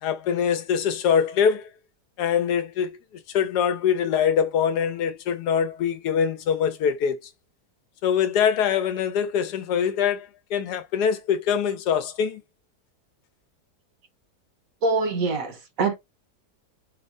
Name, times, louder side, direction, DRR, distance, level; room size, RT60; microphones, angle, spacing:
voice 1, 0.0-1.7 2.2-3.0 3.3-7.2 8.0-12.4, left 7 dB, 85° left, 1.2 m, -23 dB
voice 2, 14.8-16.0, right 3 dB, 60° right, 1.3 m, -24 dB
4.7 x 2.0 x 2.6 m
omnidirectional pair, 1.7 m